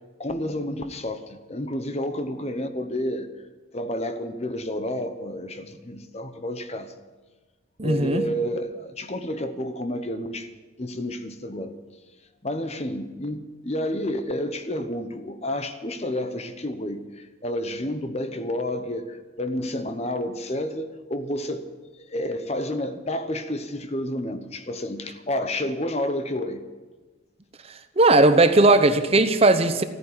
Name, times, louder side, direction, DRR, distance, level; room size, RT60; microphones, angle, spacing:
voice 1, 0.2-3.3 3.7-6.9 7.8-10.5 10.8-11.7 12.4-21.7 22.0-26.6, left 1 dB, 35° left, 9 dB, 1.0 m, -30 dB
voice 2, 7.8-8.2 28.0-29.8, right 2 dB, 30° right, 10 dB, 0.8 m, -17 dB
14.5 x 9.8 x 9.8 m, 1.3 s
head